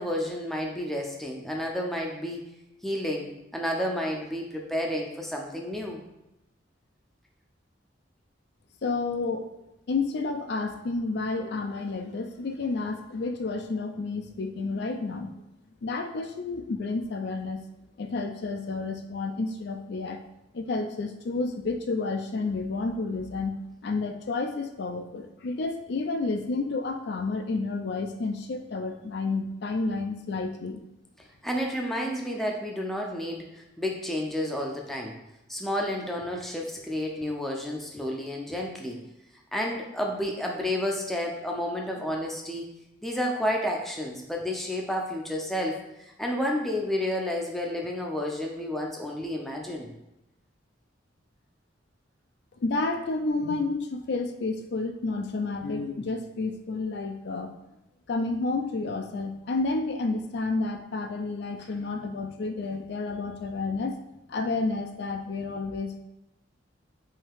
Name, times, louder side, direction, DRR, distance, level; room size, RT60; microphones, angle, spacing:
voice 1, 0.0-2.4 2.8-6.0 31.2-35.2 35.5-39.0 39.5-42.7 43.0-45.8 46.2-49.9, left 1 dB, ahead, -1 dB, 0.5 m, -31 dB
voice 2, 8.8-9.5 9.9-15.3 15.8-17.6 18.0-20.2 20.5-23.5 23.8-30.8 52.6-57.5 58.1-63.9 64.3-66.0, left 3 dB, 60° left, 6 dB, 0.4 m, -30 dB
5.5 x 2.8 x 3.5 m, 0.90 s
head